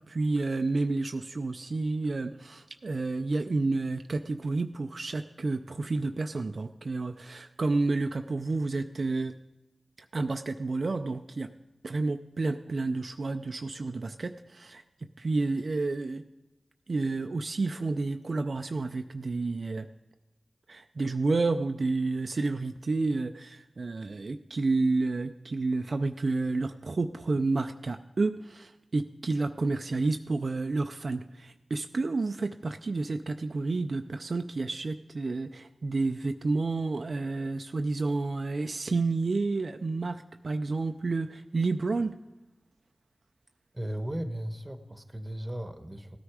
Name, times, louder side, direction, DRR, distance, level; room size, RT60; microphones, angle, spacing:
voice 1, 0.1-9.3 10.1-11.5 11.8-16.2 16.9-19.9 20.7-42.1, right 3 dB, 60° right, 6 dB, 0.4 m, -30 dB
voice 2, 43.7-46.2, right 1 dB, 20° right, 9 dB, 1.1 m, -36 dB
16.5 x 9.7 x 4.8 m, 1.0 s
cardioid pair, 60°, 0 cm